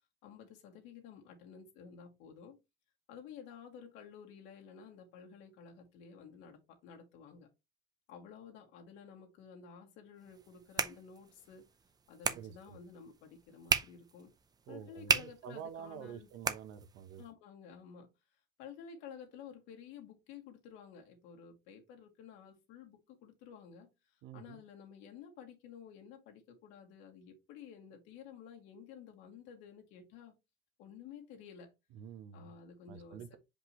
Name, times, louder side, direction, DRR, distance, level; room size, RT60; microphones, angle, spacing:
voice 1, 0.2-2.6 3.1-7.5 8.1-11.7 12.1-14.3 14.7-16.3 17.2-18.1 18.6-30.3 30.8-31.7 32.3-33.4, left 7 dB, 75° left, 2.2 m, -52 dB
sound 1, 10.2-17.3, right 5 dB, 20° right, 0.6 m, -38 dB
voice 2, 12.3-12.8 14.7-17.2 24.2-24.6 31.9-32.5 32.9-33.4, right 8 dB, 70° right, 1.0 m, -48 dB
6.0 x 5.2 x 3.0 m
cardioid pair, 145°, 19 cm